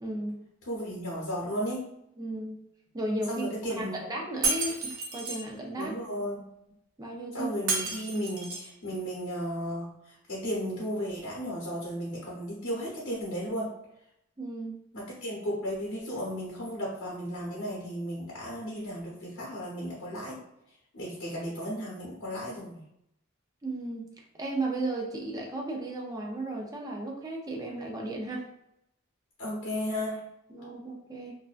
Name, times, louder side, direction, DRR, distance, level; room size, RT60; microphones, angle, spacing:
voice 1, 0.0-0.4 2.2-2.6 2.9-3.5 3.8-5.9 7.0-7.5 14.4-14.8 23.6-24.1 24.3-28.5 30.5-31.3, right 2 dB, 20° right, 0 dB, 0.4 m, -34 dB
voice 2, 0.7-1.8 3.3-4.0 5.8-6.4 7.3-13.7 14.9-20.4 20.9-22.8 29.4-30.2, equal, 75° left, -6 dB, 0.9 m, -34 dB
Shatter, 4.4-5.4 7.7-8.7, right 4 dB, 85° right, 0.6 m, -31 dB
2.6 x 2.1 x 2.4 m, 0.80 s
head